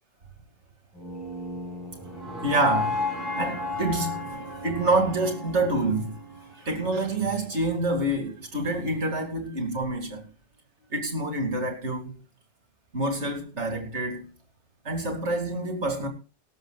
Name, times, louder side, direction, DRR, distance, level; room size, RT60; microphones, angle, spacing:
sound 1, 0.9-7.0, left 2 dB, ahead, 5.1 m, -33 dB
voice 1, 2.4-6.1 6.6-10.3 10.9-12.2 12.9-14.3 14.8-16.1, right 2 dB, 75° right, 2.9 m, -27 dB
18.5 x 13.0 x 2.4 m
omnidirectional pair, 1.2 m